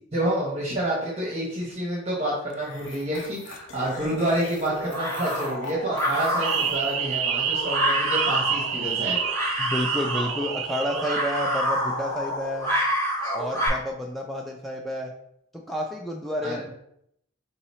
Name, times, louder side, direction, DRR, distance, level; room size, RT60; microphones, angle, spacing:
voice 1, 0.1-9.2 16.4-16.6, right 1 dB, 30° right, -6 dB, 1.0 m, -28 dB
sound 1, 1.4-1.6 2.5-7.0, left 3 dB, 65° left, 0.6 m, -41 dB
sound 2, 3.8-13.7, equal, 20° left, 1.7 m, -29 dB
sound 3, 6.4-11.6, right 7 dB, 80° right, 0.4 m, -28 dB
voice 2, 9.6-12.7 13.3-15.1 15.7-16.7, equal, ahead, 0 dB, 0.3 m, -30 dB
3.9 x 2.9 x 4.2 m, 0.73 s
head